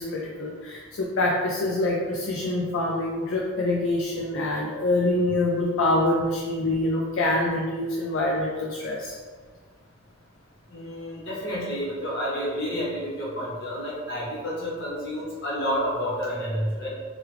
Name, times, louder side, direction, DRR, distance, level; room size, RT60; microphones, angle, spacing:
voice 1, 0.0-9.2, left 2 dB, 70° left, -2 dB, 0.4 m, -25 dB
voice 2, 10.7-16.9, equal, 55° left, -6 dB, 1.0 m, -30 dB
3.1 x 2.3 x 3.2 m, 1.5 s
head